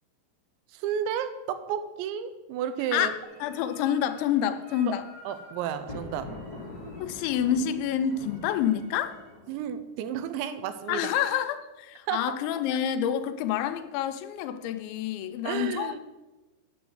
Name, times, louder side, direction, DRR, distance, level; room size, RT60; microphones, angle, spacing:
voice 1, 0.7-3.1 5.3-6.3 9.5-11.0 12.1-12.3 15.5-16.0, right 9 dB, 90° right, 3.1 m, -32 dB
voice 2, 2.9-5.1 7.0-9.2 10.9-16.0, left 9 dB, 85° left, 3.0 m, -28 dB
sound 1, 3.2-9.3, right 1 dB, 70° right, 4.5 m, -53 dB
Thunder, 5.7-9.8, left 2 dB, 10° left, 2.8 m, -43 dB
7.7 x 7.1 x 7.7 m
omnidirectional pair, 5.1 m